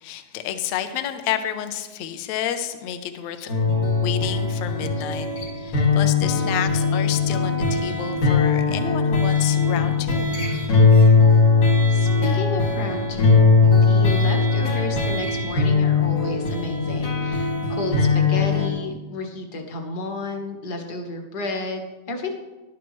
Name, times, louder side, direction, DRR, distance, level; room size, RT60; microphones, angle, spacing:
voice 1, 0.0-3.5 4.0-5.3 5.6-10.7, left 10 dB, 70° left, 8 dB, 1.9 m, -30 dB
sound 1, 3.5-18.7, left 4 dB, 85° left, 3.9 m, -19 dB
voice 2, 11.9-13.5 13.8-22.4, left 2 dB, 45° left, 3 dB, 1.3 m, -32 dB
14.0 x 11.5 x 3.2 m, 1.1 s
omnidirectional pair, 3.4 m